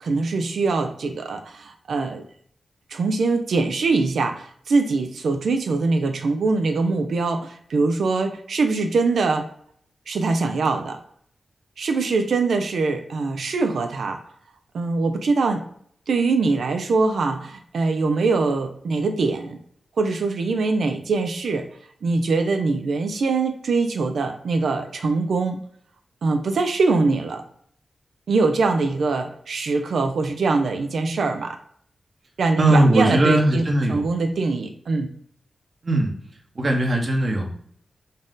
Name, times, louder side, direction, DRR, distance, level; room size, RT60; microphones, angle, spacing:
voice 1, 0.0-2.2 2.9-9.5 10.1-11.0 11.8-14.2 14.7-15.6 16.1-19.6 20.0-21.7 22.0-25.6 26.2-27.4 28.3-31.6 32.4-33.6 33.9-35.1, right 3 dB, 80° right, 5 dB, 0.4 m, -23 dB
voice 2, 32.6-34.1 35.8-36.1 36.5-37.5, right 1 dB, 55° right, 2 dB, 1.0 m, -19 dB
4.0 x 2.5 x 3.7 m, 0.63 s
cardioid pair, 55°, 0 cm